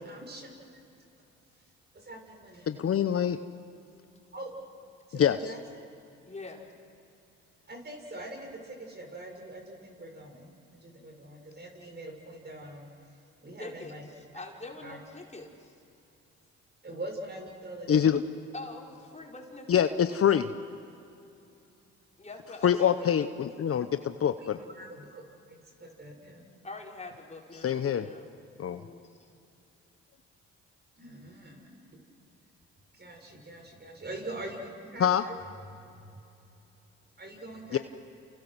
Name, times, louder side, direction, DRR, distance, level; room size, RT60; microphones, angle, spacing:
voice 1, 0.1-0.5 1.9-2.7 4.3-4.5 5.1-5.8 7.7-10.5 10.8-12.9 13.4-14.0 14.8-15.0 16.8-18.1 24.4-25.2 25.5-26.4 31.0-32.0 32.9-35.3 35.7-36.2 37.2-37.8, right 1 dB, 35° right, 2 dB, 7.0 m, -43 dB
voice 2, 2.7-3.4 5.2-5.4 17.9-18.2 19.7-20.5 22.6-24.6 27.6-28.0 28.6-28.8 35.0-35.2 37.7-37.8, left 9 dB, 50° left, 10 dB, 1.0 m, -25 dB
voice 3, 6.3-6.6 13.6-15.7 18.5-20.0 22.2-23.0 26.6-28.3 28.7-29.3, left 2 dB, 25° left, 0 dB, 5.0 m, -44 dB
30.0 x 29.0 x 6.3 m, 2.7 s
supercardioid pair, 60°, 30 cm